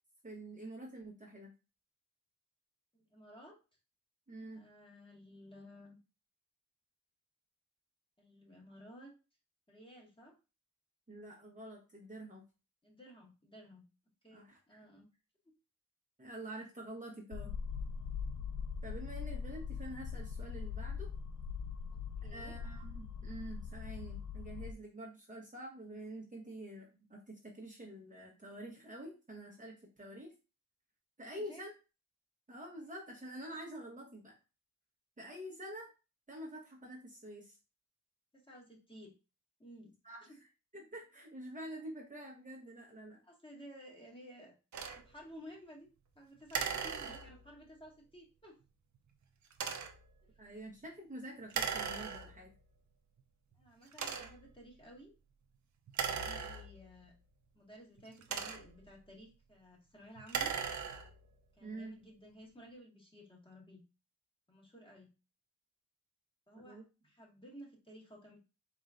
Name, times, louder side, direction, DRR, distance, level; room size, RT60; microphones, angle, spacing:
voice 1, 0.2-1.5 4.3-4.6 11.1-12.4 14.3-14.8 16.2-17.5 18.8-21.1 22.3-30.3 31.2-31.7 32.5-34.3 35.2-35.9 36.3-37.6 40.0-40.4 40.7-43.2 50.4-52.5 61.6-61.9 66.6-66.8, right 1 dB, 25° right, -3 dB, 1.1 m, -47 dB
voice 2, 2.9-3.6 4.5-6.0 8.2-9.1 9.7-10.4 12.8-13.8 14.2-15.1 22.2-22.6 31.3-31.6 38.3-39.1 39.6-39.9 40.3-40.4 43.2-44.6 44.9-45.9 46.1-48.6 53.5-55.1 56.0-57.1 57.5-60.6 61.5-63.8 64.5-65.1 66.5-68.4, equal, 15° left, -2 dB, 1.7 m, -55 dB
sound 1, 17.3-24.7, left 6 dB, 65° left, 0.5 m, -41 dB
sound 2, 44.7-45.0 46.5-47.5 49.5-50.1 51.5-52.5 53.2-53.3 53.9-54.5 55.9-57.0 58.0-58.9 60.2-61.2, right 6 dB, 60° right, 0.6 m, -38 dB
4.3 x 3.7 x 2.5 m, 0.31 s
cardioid pair, 75°, 33 cm